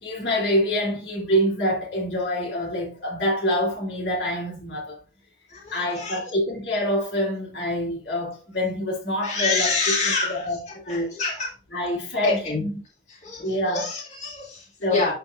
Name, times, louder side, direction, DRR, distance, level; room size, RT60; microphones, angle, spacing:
voice 1, 0.0-5.0 5.7-9.9 10.3-10.6 10.9-11.1 11.7-12.7 13.4-13.8 14.8-15.1, equal, 85° left, 3.0 m, -26 dB
voice 2, 5.5-6.2 9.2-11.5 12.2-12.6 13.1-15.1, left 3 dB, 40° left, 2.1 m, -27 dB
12.0 x 4.5 x 2.5 m
head